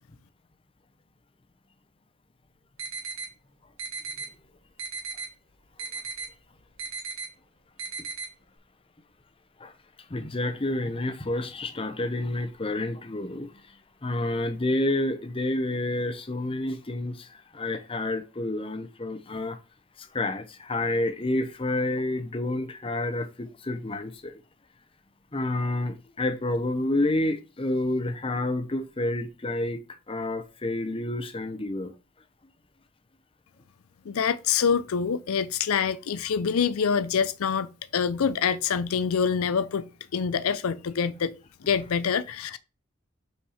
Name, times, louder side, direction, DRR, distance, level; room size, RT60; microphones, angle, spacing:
sound 1, 2.8-3.3 3.8-4.3 4.8-5.3 5.8-6.3 6.8-7.3 7.8-8.3, right 4 dB, 65° right, 1.8 m, -35 dB
voice 1, 10.1-13.5 14.0-19.6 20.0-24.4 25.3-29.8 30.1-31.9, left 1 dB, 25° left, 0.8 m, -29 dB
voice 2, 34.1-41.3 41.7-42.6, left 6 dB, 85° left, 0.5 m, -26 dB
5.6 x 4.5 x 4.8 m
head